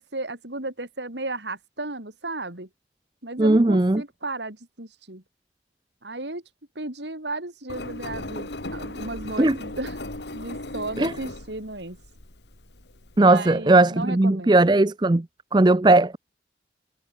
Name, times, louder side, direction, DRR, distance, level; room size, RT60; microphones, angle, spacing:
voice 1, 0.0-2.7 3.2-5.2 6.0-6.4 6.8-10.0 10.3-12.0 13.2-14.6, right 2 dB, 85° right, 5.2 m, -34 dB
voice 2, 3.4-4.0 9.4-9.6 11.0-11.1 13.2-15.3 15.5-16.2, right 2 dB, 25° right, 0.5 m, -18 dB
Engine, 7.7-13.2, left 2 dB, 85° left, 2.7 m, -37 dB
head